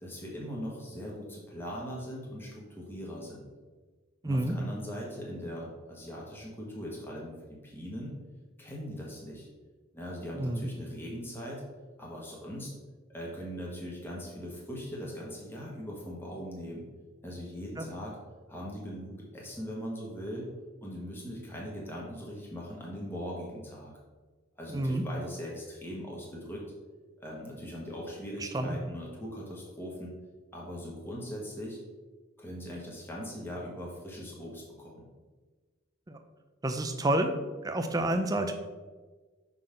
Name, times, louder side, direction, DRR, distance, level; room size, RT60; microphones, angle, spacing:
voice 1, 0.0-3.5 4.2-8.1 8.6-9.5 9.9-11.6 12.0-12.7 13.1-16.8 17.2-18.2 18.5-20.5 20.8-23.9 24.6-26.6 27.2-30.1 30.5-31.8 32.4-35.0, equal, 10° left, -4 dB, 1.2 m, -40 dB
voice 2, 4.2-4.6 10.4-10.7 17.8-17.9 24.7-25.0 28.4-28.8 36.1-36.2 36.6-37.3 37.6-38.5, right 1 dB, 20° right, 6 dB, 0.5 m, -29 dB
5.9 x 3.9 x 5.0 m, 1.3 s
head